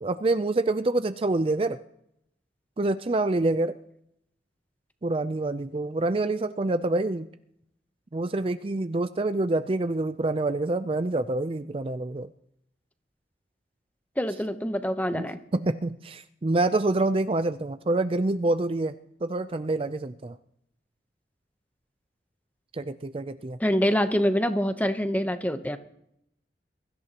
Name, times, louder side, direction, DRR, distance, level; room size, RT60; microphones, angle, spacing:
voice 1, 0.0-1.8 2.8-3.8 5.0-7.3 8.1-12.3 15.1-15.3 15.5-19.0 19.2-20.4 22.7-23.6, right 2 dB, 30° right, 11 dB, 0.4 m, -26 dB
voice 2, 14.2-15.4 23.6-25.8, equal, 10° left, 9 dB, 0.8 m, -25 dB
23.0 x 14.0 x 2.9 m, 0.75 s
head